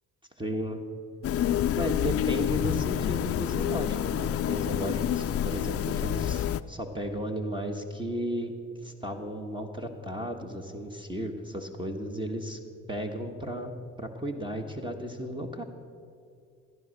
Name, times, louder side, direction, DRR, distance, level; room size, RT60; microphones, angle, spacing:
voice 1, 0.4-0.8 1.3-8.5 8.8-12.6 12.9-15.6, equal, 15° right, 4 dB, 1.4 m, -34 dB
sound 1, 1.2-6.6, left 10 dB, 50° left, 0.5 m, -28 dB
14.5 x 11.0 x 6.5 m, 2.3 s
cardioid pair, 90°, 30 cm